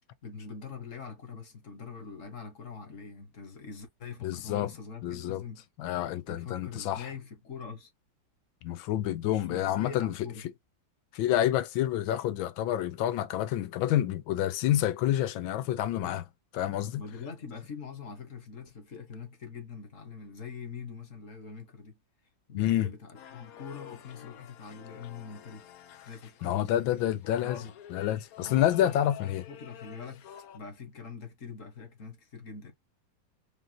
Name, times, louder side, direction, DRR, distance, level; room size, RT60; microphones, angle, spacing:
voice 1, 0.2-5.7 6.3-7.9 9.2-10.4 15.9-16.2 16.9-22.0 22.5-25.7 26.0-27.7 28.4-30.3 30.5-32.7, left 5 dB, 45° left, 1.6 m, -43 dB
voice 2, 4.2-4.7 5.0-5.4 5.8-7.1 8.6-10.3 11.1-16.2 16.5-17.0 22.5-22.9 26.4-27.6 27.9-29.4, left 12 dB, 90° left, 1.4 m, -28 dB
sound 1, 23.1-30.6, left 10 dB, 70° left, 0.9 m, -49 dB
5.2 x 2.6 x 2.7 m
omnidirectional pair, 2.1 m